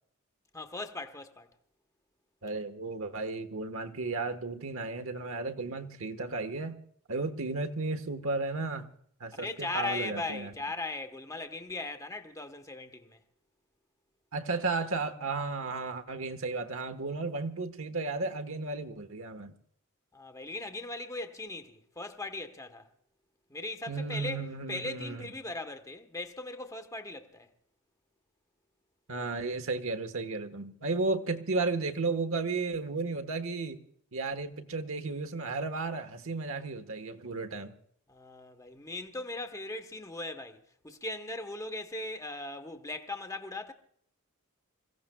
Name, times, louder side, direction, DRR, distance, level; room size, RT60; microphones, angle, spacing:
voice 1, 0.5-1.5 9.4-13.2 20.1-22.9 23.5-27.5 38.1-40.6 40.8-43.7, left 2 dB, 15° left, 1.1 m, -39 dB
voice 2, 2.4-6.8 7.1-8.9 9.2-10.5 14.3-19.5 23.9-25.3 29.1-33.8 34.1-37.7, right 3 dB, 70° right, 1.3 m, -34 dB
27.5 x 16.0 x 2.3 m
head